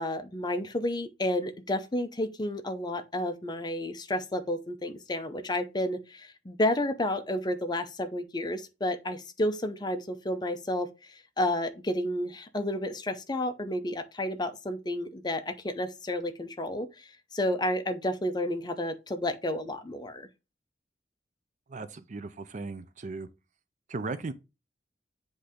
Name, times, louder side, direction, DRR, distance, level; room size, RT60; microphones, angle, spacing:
voice 1, 0.0-20.3, left 1 dB, 25° left, 0.6 m, -31 dB
voice 2, 21.7-23.3 23.9-24.3, right 3 dB, 45° right, 0.5 m, -37 dB
7.9 x 2.7 x 4.9 m
head